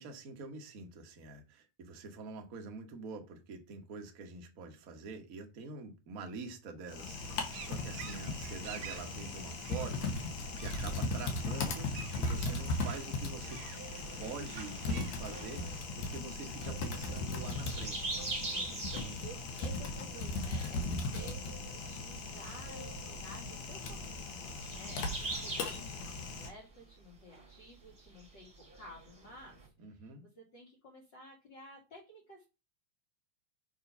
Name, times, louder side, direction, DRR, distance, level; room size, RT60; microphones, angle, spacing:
voice 1, 0.0-10.1 10.6-13.6 14.2-18.2 18.7-19.2 20.5-20.7 24.9-25.1 29.8-30.3, right 4 dB, 50° right, 1.0 m, -46 dB
Typing, 6.9-26.5, left 2 dB, 70° left, 2.7 m, -38 dB
sound 1, 7.2-15.8, right 8 dB, 80° right, 1.2 m, -51 dB
sound 2, 13.5-29.7, right 2 dB, 20° right, 2.0 m, -45 dB
voice 2, 18.5-30.1 30.4-32.4, equal, 40° left, 2.3 m, -53 dB
6.9 x 4.5 x 5.5 m
omnidirectional pair, 3.4 m